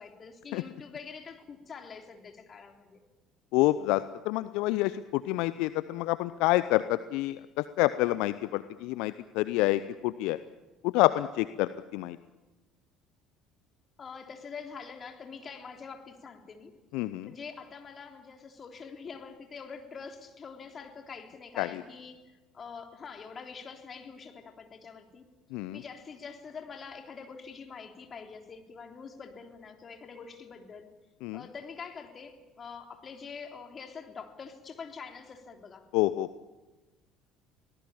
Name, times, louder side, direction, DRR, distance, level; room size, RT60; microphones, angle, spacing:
voice 1, 0.0-3.0 14.0-16.7 17.2-25.2 25.7-30.9 31.3-35.9, left 5 dB, 35° left, 4 dB, 3.5 m, -45 dB
voice 2, 3.5-10.4 10.8-12.2 16.9-17.3 21.6-21.8 25.5-25.8 31.2-31.4 35.9-36.3, left 17 dB, 65° left, 14 dB, 0.7 m, -28 dB
24.0 x 18.0 x 8.9 m, 1.2 s
hypercardioid pair, 60°, 0 cm